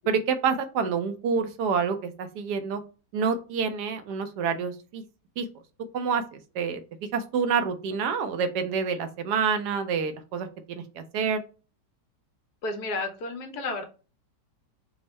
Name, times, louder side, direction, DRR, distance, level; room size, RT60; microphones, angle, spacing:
voice 1, 0.1-2.8 3.1-5.0 5.4-5.5 5.9-6.8 7.1-10.5 11.0-11.4, right 6 dB, 75° right, 8 dB, 1.1 m, -27 dB
voice 2, 12.6-13.8, left 3 dB, 70° left, 5 dB, 1.2 m, -32 dB
3.5 x 2.0 x 4.1 m, 0.35 s
omnidirectional pair, 1.9 m